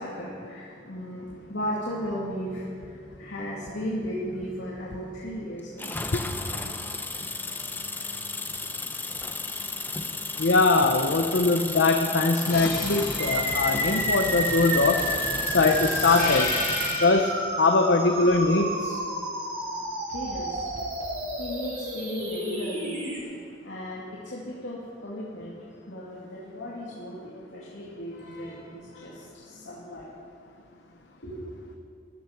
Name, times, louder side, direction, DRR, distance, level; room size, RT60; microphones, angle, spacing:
voice 1, 0.0-6.0 9.3-9.4 20.1-20.7 21.4-23.1 23.6-25.5 25.9-30.1 31.2-31.5, equal, 85° left, -7 dB, 2.5 m, -36 dB
sound 1, 5.8-17.1, left 3 dB, 10° left, 0.8 m, -33 dB
voice 2, 10.4-15.0 15.5-16.5 17.0-19.0, left 3 dB, 70° left, 4 dB, 0.8 m, -22 dB
sound 2, 12.5-17.3 20.1-21.2, left 2 dB, 50° left, 4.0 m, -34 dB
sound 3, 13.2-23.2, right 1 dB, 50° right, 3.3 m, -31 dB
15.0 x 11.5 x 6.0 m, 2.3 s
head